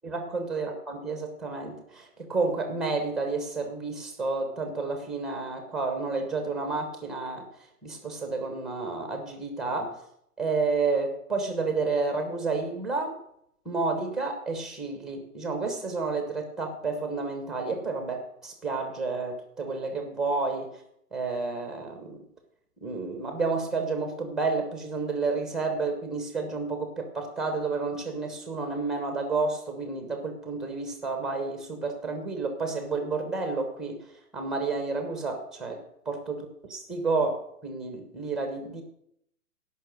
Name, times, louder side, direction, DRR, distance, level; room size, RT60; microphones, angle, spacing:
voice 1, 0.0-7.5 7.8-9.9 10.4-13.2 13.6-20.7 21.1-22.2 22.8-34.0 34.3-38.8, right 3 dB, ahead, 5 dB, 0.9 m, -30 dB
15.5 x 5.9 x 6.4 m, 0.74 s
hypercardioid pair, 150°, 48 cm